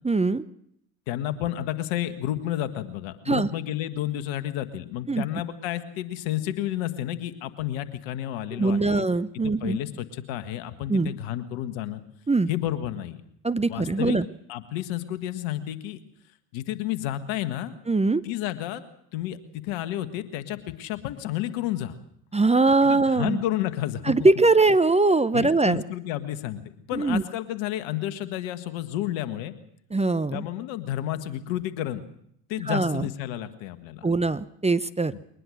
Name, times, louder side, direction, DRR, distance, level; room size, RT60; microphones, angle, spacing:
voice 1, 0.0-0.4 3.3-3.5 5.1-5.3 8.5-9.8 10.9-11.1 12.3-12.5 13.4-14.2 17.9-18.2 22.3-23.4 24.1-25.8 26.9-27.2 29.9-30.4 32.7-33.1 34.0-35.1, right 3 dB, 15° right, 13 dB, 0.8 m, -22 dB
voice 2, 1.1-9.1 9.4-12.0 12.5-13.2 13.7-14.2 14.5-16.0 16.5-17.7 18.2-18.8 19.1-19.4 19.6-22.0 22.8-24.0 25.3-26.6 26.9-29.5 30.3-32.0 32.5-34.1 35.1-35.2, left 13 dB, 70° left, 11 dB, 1.7 m, -31 dB
22.0 x 19.5 x 6.4 m, 0.71 s
hypercardioid pair, 55°, 47 cm